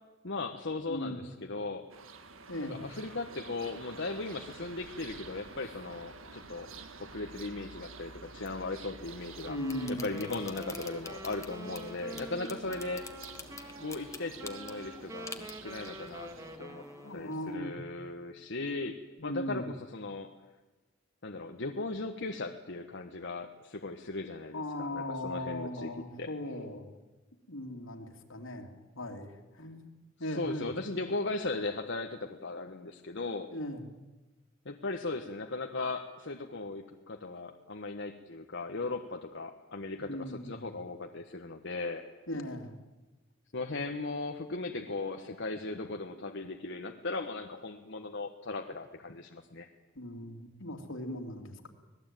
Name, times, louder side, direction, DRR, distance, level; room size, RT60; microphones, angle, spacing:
voice 1, 0.2-1.8 2.6-6.7 7.0-9.6 9.9-13.1 13.8-16.3 16.6-16.8 17.1-20.3 21.2-25.9 26.2-26.3 30.3-33.5 34.6-42.0 43.5-49.7, left 3 dB, 60° left, 4 dB, 1.3 m, -37 dB
voice 2, 0.9-1.2 2.5-2.8 9.5-10.1 17.0-17.8 19.2-19.7 24.5-26.8 27.5-29.9 30.2-30.7 33.5-33.9 39.9-40.7 42.3-42.8 49.9-51.7, left 1 dB, 80° left, 4 dB, 3.1 m, -38 dB
sound 1, 1.9-16.6, right 4 dB, 85° right, 1.8 m, -50 dB
sound 2, 9.0-17.6, left 4 dB, 15° left, 1.6 m, -49 dB
Wind instrument woodwind instrument, 9.3-17.3, right 1 dB, 15° right, 1.9 m, -46 dB
25.5 x 19.0 x 9.2 m, 1.2 s
head